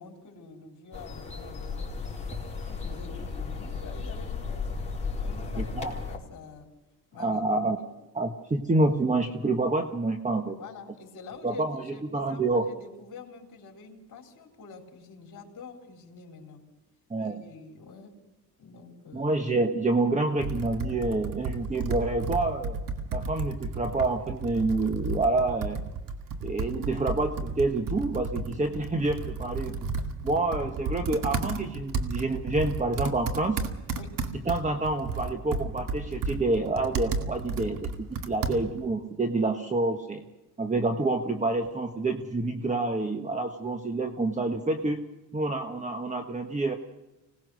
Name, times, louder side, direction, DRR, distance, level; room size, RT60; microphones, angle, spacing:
voice 1, 0.0-2.3 2.7-4.9 5.1-6.7 7.1-7.5 7.8-7.9 10.6-16.6 17.2-18.1 18.6-19.3 30.6-30.7 34.0-34.1, left 4 dB, 50° left, 1 dB, 4.2 m, -47 dB
sound 1, 0.9-6.2, left 4 dB, 15° left, 4.4 m, -35 dB
voice 2, 5.6-5.9 7.2-7.8 8.1-10.6 11.4-12.6 17.1-17.4 19.1-22.8 23.1-25.8 26.4-29.7 30.2-33.6 34.5-40.2 40.6-45.0 45.3-46.7, right 2 dB, 20° right, 5 dB, 1.4 m, -28 dB
Computer keyboard, 20.4-38.9, right 4 dB, 55° right, 2.2 m, -33 dB
25.5 x 19.0 x 6.5 m, 1.0 s
cardioid pair, 105°, 40 cm